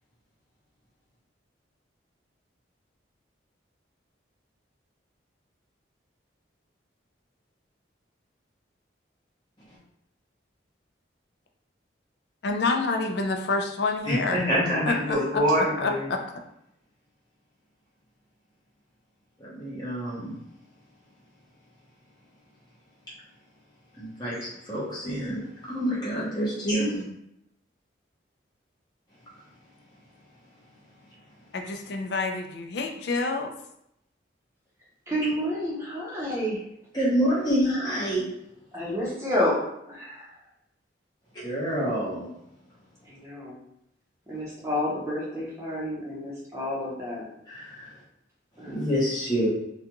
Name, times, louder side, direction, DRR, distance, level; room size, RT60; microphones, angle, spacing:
voice 1, 12.4-14.4 14.9-15.2 15.8-16.2 31.5-33.5, left 3 dB, 60° left, 3 dB, 0.4 m, -27 dB
voice 2, 14.0-16.1 19.4-20.3 24.0-27.0 36.9-38.2 41.3-42.3 47.5-47.9 48.6-49.5, equal, 20° left, -8 dB, 0.8 m, -27 dB
voice 3, 35.1-36.6 38.7-39.6 39.9-40.3 43.1-43.6 44.3-47.3 48.6-48.9, left 1 dB, 15° right, -5 dB, 0.7 m, -30 dB
2.4 x 2.2 x 2.9 m, 0.78 s
head